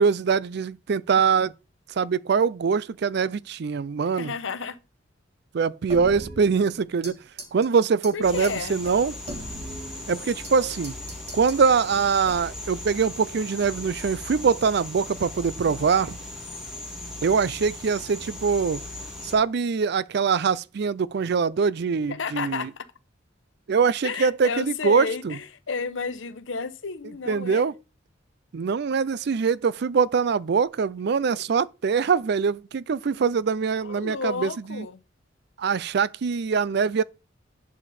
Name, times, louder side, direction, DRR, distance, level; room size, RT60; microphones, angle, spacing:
voice 1, 0.0-1.5 1.9-4.3 5.5-7.2 7.5-9.2 10.1-10.9 11.3-16.2 17.2-18.8 19.2-22.7 23.7-25.4 27.3-27.7 28.5-34.9 35.6-37.0, right 5 dB, 60° right, 0.4 m, -23 dB
voice 2, 4.1-4.8 8.1-8.8 22.1-22.9 24.0-27.7 31.3-31.4 33.8-35.0, left 5 dB, 85° left, 0.9 m, -32 dB
sound 1, 5.9-7.1 7.4-7.7 8.0-8.1 8.4-8.5 8.8-10.5 10.8-11.6 12.2-12.7, right 1 dB, 35° right, 3.0 m, -39 dB
Yucatan jungle crickets, 8.2-19.3, left 2 dB, 5° right, 3.6 m, -38 dB
11.0 x 5.1 x 4.2 m
head